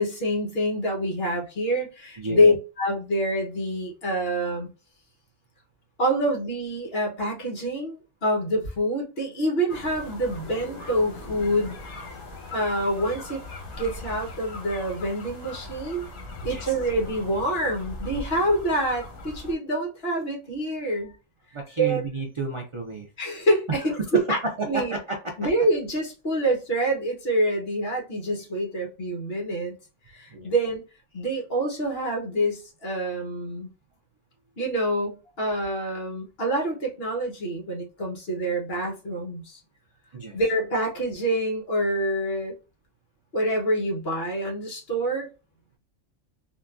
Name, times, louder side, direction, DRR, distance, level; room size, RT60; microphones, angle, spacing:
voice 1, 0.0-4.7 6.0-11.8 12.5-13.4 13.8-16.1 16.4-21.1 21.8-22.0 23.2-24.4 24.7-24.9 25.4-29.8 30.1-30.8 31.1-33.7 34.6-39.6 40.3-42.5 43.3-45.3, equal, 50° left, 0 dB, 1.2 m, -26 dB
voice 2, 2.2-2.6 16.5-16.7 21.0-21.1 21.5-23.1 24.6-25.3 30.3-30.5 31.2-31.3 40.1-40.4, right 3 dB, 55° right, 1 dB, 0.3 m, -32 dB
sound 1, 9.7-19.5, left 2 dB, 80° left, 1.2 m, -39 dB
3.7 x 2.3 x 2.4 m, 0.31 s
omnidirectional pair, 1.4 m